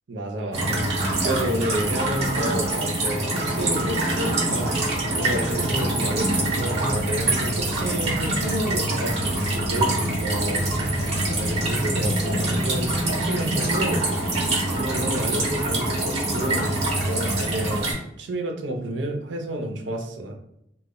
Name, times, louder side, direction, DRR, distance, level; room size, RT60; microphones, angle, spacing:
voice 1, 0.1-0.9 1.2-11.0 11.3-14.2 14.7-16.7 17.0-17.9 18.2-20.3, right 1 dB, 80° right, 3 dB, 0.5 m, -30 dB
sound 1, 0.5-17.9, right 1 dB, 35° right, 0.8 m, -25 dB
sound 2, 2.0-17.6, equal, 50° left, 0.7 m, -36 dB
2.2 x 2.0 x 3.6 m, 0.77 s
head